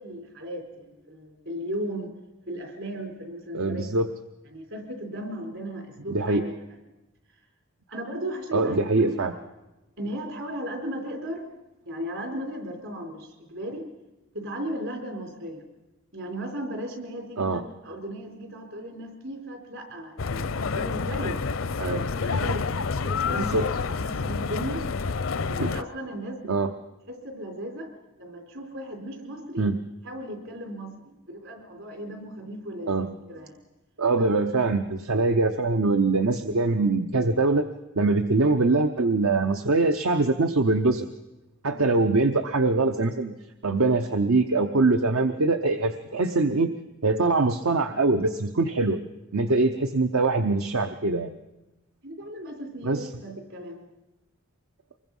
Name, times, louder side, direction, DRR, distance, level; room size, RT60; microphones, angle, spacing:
voice 1, 0.0-2.1 2.5-3.8 4.5-6.5 7.9-9.3 10.0-11.5 11.8-13.9 14.3-15.6 16.1-21.4 21.8-23.6 24.0-24.9 25.5-26.6 27.1-27.9 28.2-29.7 30.0-33.6 34.2-34.3 41.7-41.9 52.0-53.8, equal, 65° right, 4 dB, 4.0 m, -36 dB
voice 2, 3.5-4.1 6.1-6.4 8.5-9.3 17.4-17.6 21.8-22.0 23.3-23.7 25.6-25.7 26.5-26.7 29.6-29.8 32.9-33.1 34.0-37.7 37.9-41.1 41.6-43.4 43.6-46.7 47.0-49.0 49.3-51.3 52.8-53.1, right 3 dB, 85° right, 8 dB, 0.9 m, -23 dB
sound 1, 20.2-25.8, left 4 dB, 75° left, 0.6 m, -28 dB
24.5 x 21.5 x 5.5 m, 1.0 s
head